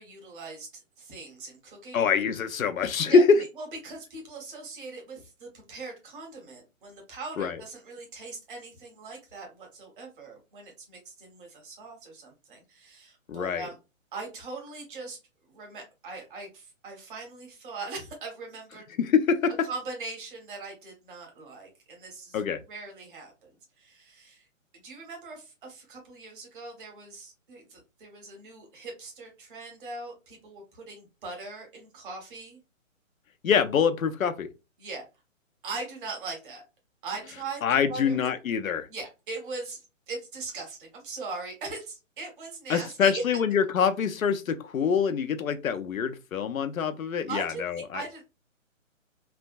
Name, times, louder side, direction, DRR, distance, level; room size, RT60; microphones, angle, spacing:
voice 1, 0.0-2.0 3.1-3.2 3.6-13.8 14.1-15.2 15.5-18.9 19.7-22.4 22.7-23.5 23.8-24.4 24.7-32.6 34.8-35.0 35.6-36.6 37.0-37.6 37.9-38.2 38.9-39.8 40.1-43.2 47.3-48.2, right 3 dB, 40° right, 1.3 m, -40 dB
voice 2, 1.9-3.4 7.4-7.6 13.3-13.7 19.0-19.5 22.3-22.6 33.4-34.5 37.6-38.9 42.7-48.0, left 6 dB, 85° left, 0.6 m, -25 dB
3.3 x 2.2 x 2.4 m
hypercardioid pair, 145°, 40 cm